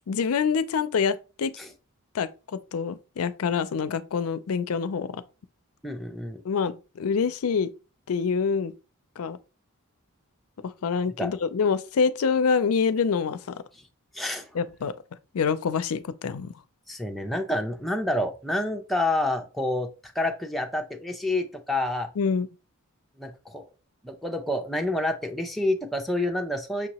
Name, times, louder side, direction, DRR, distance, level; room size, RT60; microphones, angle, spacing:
voice 1, 0.1-1.5 2.1-5.2 6.4-7.7 8.1-8.7 9.2-9.4 10.6-13.6 14.5-14.9 15.3-16.5 22.2-22.5, left 5 dB, 70° left, 0.4 m, -26 dB
voice 2, 5.8-6.4 11.2-11.3 14.1-14.5 16.9-22.1 23.2-23.6 24.0-26.9, left 1 dB, ahead, 0.5 m, -28 dB
5.9 x 2.8 x 2.9 m
head